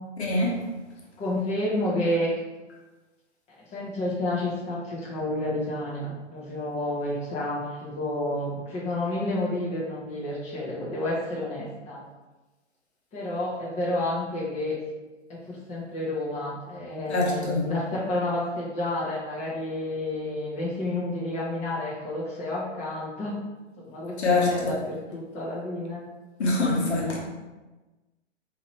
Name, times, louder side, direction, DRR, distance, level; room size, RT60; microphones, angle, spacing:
voice 1, 0.2-0.5 17.1-17.7 24.2-24.8 26.4-27.2, left 2 dB, 65° left, -3 dB, 1.3 m, -24 dB
voice 2, 1.2-2.3 3.7-12.0 13.1-14.8 15.3-23.4 23.8-26.0, left 1 dB, 20° left, -6 dB, 1.2 m, -30 dB
5.0 x 3.0 x 3.2 m, 1.2 s
figure-of-eight pair, 120°, 36 cm